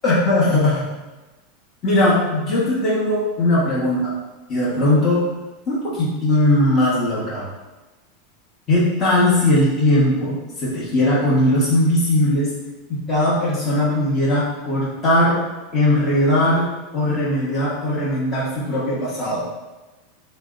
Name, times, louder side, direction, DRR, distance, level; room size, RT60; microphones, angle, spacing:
voice 1, 0.0-0.9 1.8-4.1 4.5-5.3 5.7-7.4 8.7-12.5 12.9-15.4 15.7-16.7 16.9-19.4, left 1 dB, 25° left, -8 dB, 1.2 m, -19 dB
3.8 x 2.1 x 3.7 m, 1.2 s
supercardioid pair, 130°, 0 cm